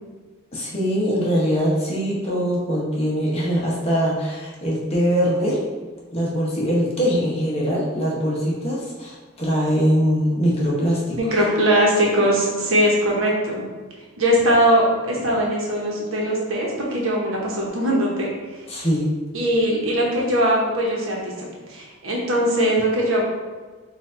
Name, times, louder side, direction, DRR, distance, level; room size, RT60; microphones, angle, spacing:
voice 1, 0.5-5.6 6.1-11.2 18.7-19.1, equal, 30° left, -5 dB, 0.9 m, -22 dB
voice 2, 11.2-13.6 14.2-18.3 19.3-21.3 21.7-23.2, equal, 80° right, -3 dB, 1.0 m, -20 dB
4.4 x 2.5 x 3.8 m, 1.4 s
head